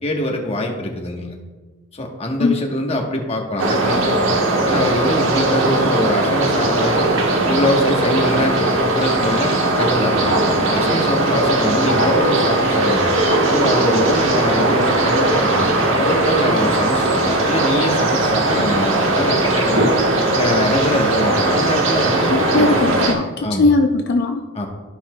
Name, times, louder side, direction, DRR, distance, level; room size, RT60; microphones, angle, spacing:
voice 1, 0.0-1.4 1.9-7.1 7.4-10.3 10.7-13.2 13.5-15.7 16.0-19.9 20.3-22.8 23.4-23.7 24.5-24.7, left 1 dB, 30° left, 1 dB, 1.1 m, -23 dB
sound 1, 3.6-23.1, right 2 dB, 75° right, 1.2 m, -18 dB
voice 2, 22.3-24.4, left 3 dB, 55° left, 5 dB, 0.4 m, -19 dB
14.5 x 5.7 x 2.2 m, 1.3 s
head